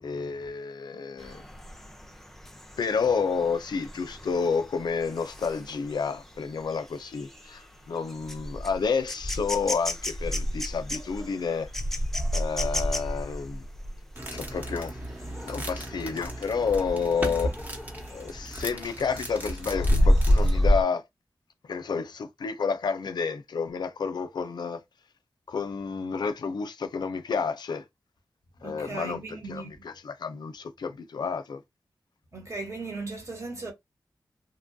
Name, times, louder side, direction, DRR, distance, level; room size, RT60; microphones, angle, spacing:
voice 1, 0.0-1.4 2.8-11.7 12.3-13.7 14.3-15.0 15.4-17.5 18.1-21.0 21.7-24.8 25.5-27.8 28.6-29.2 29.5-31.6, left 5 dB, 80° left, 0.4 m, -30 dB
sound 1, 1.2-15.7 16.2-16.5 16.8-18.5 18.8-20.8, equal, 5° left, 0.5 m, -29 dB
sound 2, 14.2-20.6, right 1 dB, 25° right, 0.9 m, -37 dB
voice 2, 28.6-29.7 32.3-33.7, right 3 dB, 45° right, 1.2 m, -37 dB
2.9 x 2.2 x 2.6 m
wide cardioid pair, 70°, 7 cm